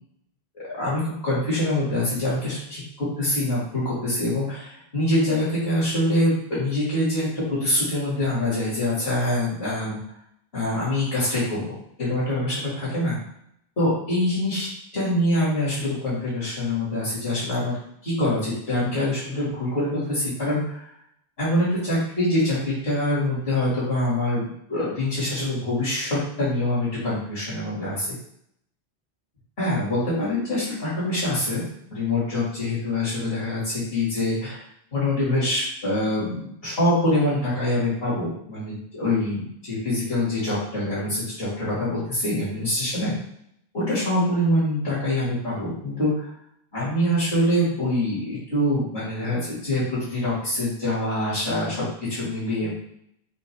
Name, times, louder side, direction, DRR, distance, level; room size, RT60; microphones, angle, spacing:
voice 1, 0.6-10.0 10.5-11.7 12.0-13.2 13.8-14.7 14.9-17.8 18.0-20.9 21.4-28.1 29.6-34.6 34.9-43.1 43.7-46.3 46.7-52.7, left 1 dB, 70° left, -9 dB, 2.3 m, -25 dB
6.8 x 2.4 x 3.2 m, 0.73 s
omnidirectional pair, 1.1 m